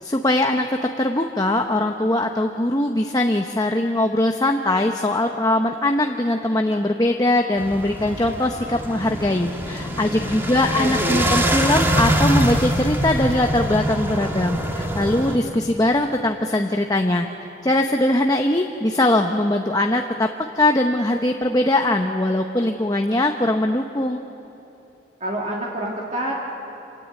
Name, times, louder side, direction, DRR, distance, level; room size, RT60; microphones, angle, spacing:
voice 1, 0.0-17.3 17.6-20.3 20.6-24.2, left 1 dB, 20° left, 4 dB, 0.8 m, -21 dB
sound 1, 7.6-15.4, equal, 15° right, 1.9 m, -24 dB
voice 2, 10.8-11.3 25.2-26.4, right 1 dB, 40° right, -3 dB, 2.4 m, -27 dB
26.5 x 18.5 x 8.3 m, 3.0 s
head